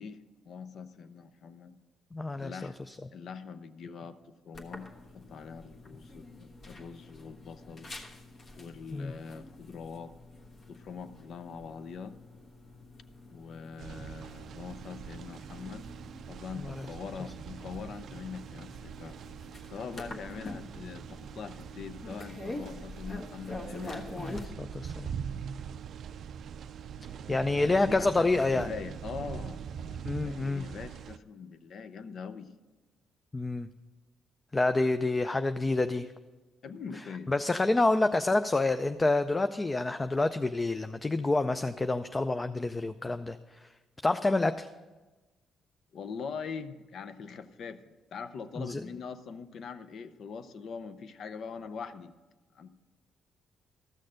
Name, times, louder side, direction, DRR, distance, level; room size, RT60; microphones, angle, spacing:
voice 1, 0.0-1.8 2.3-2.8 3.1-4.9 5.1-7.9 8.6-10.1 10.7-12.2 13.3-15.9 16.3-19.2 19.7-24.5 27.5-32.5 36.6-37.3 45.9-52.1 52.5-52.7, left 5 dB, 65° left, 12 dB, 0.6 m, -43 dB
voice 2, 2.1-3.0 8.9-9.1 16.6-16.9 24.2-25.1 27.3-28.7 30.0-30.7 33.3-33.7 34.5-36.1 37.3-43.4 44.0-44.7 48.6-48.8, left 2 dB, 20° left, 9 dB, 0.4 m, -28 dB
sound 1, 4.5-24.5, left 2 dB, 45° left, 1.3 m, -46 dB
sound 2, 13.8-31.2, right 8 dB, 65° right, 0.3 m, -43 dB
13.5 x 6.5 x 6.3 m, 1.2 s
cardioid pair, 90°, 0 cm